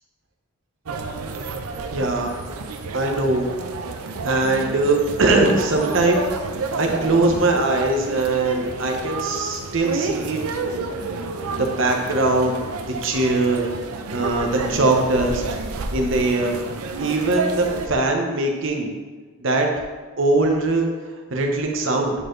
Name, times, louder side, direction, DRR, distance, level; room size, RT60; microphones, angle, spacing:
sound 1, 0.9-17.9, right 3 dB, 90° right, 0.6 m, -30 dB
voice 1, 1.9-2.3 2.9-3.5 4.2-6.2 6.8-10.4 11.5-12.5 13.0-13.7 14.1-15.4 15.9-16.6 17.0-18.9 19.4-19.7 20.2-20.9 21.3-22.1, right 2 dB, 60° right, 2 dB, 0.9 m, -21 dB
9.0 x 4.4 x 3.2 m, 1.4 s
head